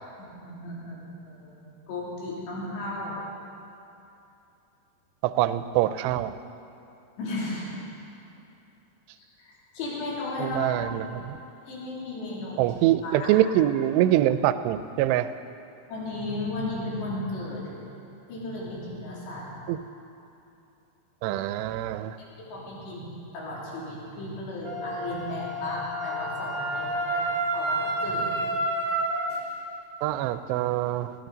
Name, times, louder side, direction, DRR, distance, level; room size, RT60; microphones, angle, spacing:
voice 1, 0.2-1.0 1.2-1.6 1.9-3.2 7.2-7.9 9.2-11.0 11.7-12.6 13.0-13.4 15.9-17.7 18.3-19.5 22.2-27.2 27.5-28.5, left 2 dB, 80° left, -6 dB, 5.1 m, -35 dB
voice 2, 5.2-6.4 10.4-11.4 12.6-15.3 19.7-19.8 21.2-22.2 30.0-31.1, right 13 dB, 85° right, 12 dB, 2.6 m, -24 dB
Wind instrument woodwind instrument, 24.6-29.3, right 1 dB, 35° right, 2.0 m, -29 dB
19.5 x 15.0 x 4.0 m, 2.7 s
omnidirectional pair, 5.0 m